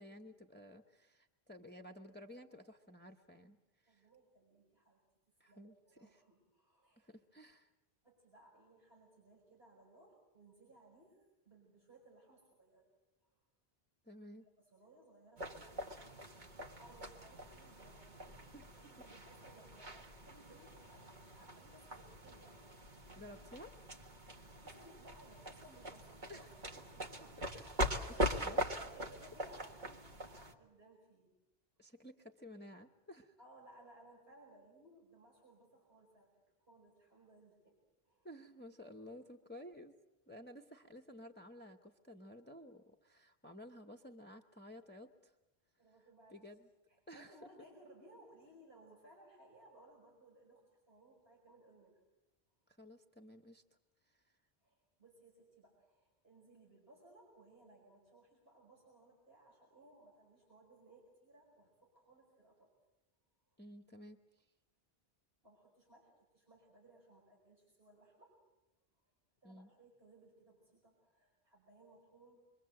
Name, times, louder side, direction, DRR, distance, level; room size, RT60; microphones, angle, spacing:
voice 1, 0.0-4.1 5.4-6.2 7.0-7.7 14.0-14.5 18.5-18.6 23.2-23.7 26.3-26.5 27.4-27.7 28.2-28.6 31.8-33.3 38.2-40.0 40.3-45.3 46.0-46.7 47.1-47.5 52.8-53.6 54.0-54.3 63.6-64.5 69.4-69.7, left 1 dB, 10° left, 5 dB, 1.0 m, -54 dB
voice 2, 3.9-5.0 5.5-7.1 8.0-12.9 13.2-13.4 14.6-15.8 16.1-22.6 24.2-31.3 33.4-37.8 38.0-38.3 45.8-46.4 46.9-52.0 54.6-62.7 63.5-63.6 65.4-68.4 69.4-72.4, right 1 dB, 70° right, -3 dB, 5.7 m, -63 dB
sound 1, 15.4-30.5, equal, 50° right, 1.9 m, -42 dB
26.5 x 24.0 x 7.8 m, 0.99 s
omnidirectional pair, 1.0 m